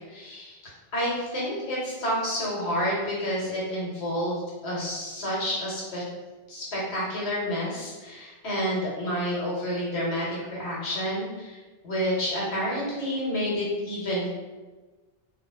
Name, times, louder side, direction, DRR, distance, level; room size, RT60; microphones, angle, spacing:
voice 1, 0.1-0.6 0.9-6.0 6.5-11.6 11.8-14.3, equal, 85° left, -5 dB, 1.2 m, -29 dB
2.3 x 2.0 x 3.2 m, 1.3 s
omnidirectional pair, 1.0 m